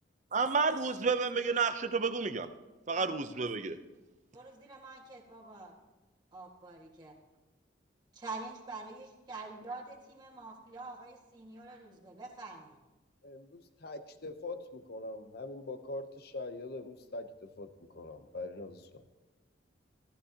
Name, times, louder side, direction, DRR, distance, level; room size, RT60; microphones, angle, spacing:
voice 1, 0.3-2.5 2.9-3.8, right 4 dB, 40° right, 10 dB, 0.6 m, -30 dB
voice 2, 4.3-5.7 6.3-7.1 8.1-12.8, right 3 dB, 25° right, -3 dB, 1.7 m, -46 dB
voice 3, 13.2-17.7 17.9-19.0, left 2 dB, 55° left, 10 dB, 0.8 m, -43 dB
14.5 x 14.0 x 2.9 m, 1.1 s
head